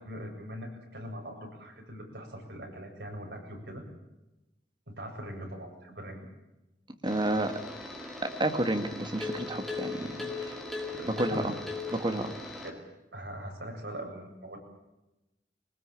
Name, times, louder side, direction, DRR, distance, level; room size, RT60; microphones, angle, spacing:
voice 1, 0.0-3.8 4.9-6.3 10.9-11.5 12.6-12.8 13.1-14.6, equal, 70° right, 1 dB, 7.7 m, -41 dB
sound 1, 7.0-12.7, left 3 dB, ahead, 4.6 m, -39 dB
voice 2, 7.0-7.5 8.2-10.6 11.2-11.5 11.9-12.4, right 1 dB, 25° right, 7 dB, 2.0 m, -30 dB
23.0 x 20.0 x 8.5 m, 0.97 s
head